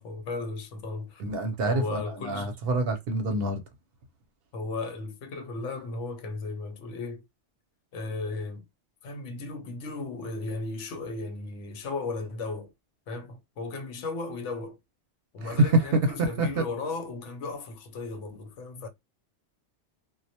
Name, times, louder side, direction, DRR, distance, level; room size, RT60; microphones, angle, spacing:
voice 1, 0.0-1.2 1.6-2.6 4.5-7.2 7.9-8.7 9.0-12.7 13.1-14.8 15.3-18.9, left 3 dB, 90° left, 0.9 m, -35 dB
voice 2, 1.2-3.6 15.4-16.6, right 2 dB, 60° right, 0.7 m, -26 dB
2.1 x 2.1 x 2.7 m
omnidirectional pair, 1.2 m